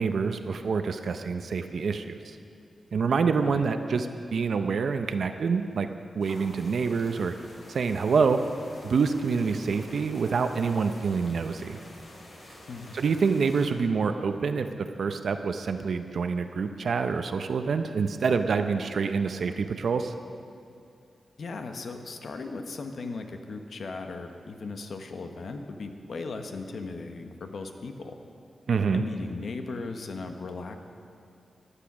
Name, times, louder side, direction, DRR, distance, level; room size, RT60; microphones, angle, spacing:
voice 1, 0.0-2.4 2.9-5.9 6.1-7.3 7.7-8.4 8.8-11.8 12.9-20.2 28.7-29.0, right 5 dB, 65° right, 8 dB, 0.6 m, -26 dB
sound 1, 6.2-13.7, left 1 dB, 50° left, 3.5 m, -48 dB
voice 2, 12.7-13.0 21.4-28.2 28.9-30.8, left 3 dB, 65° left, 6 dB, 1.1 m, -37 dB
15.5 x 10.0 x 6.1 m, 2.5 s
wide cardioid pair, 130°, 0 cm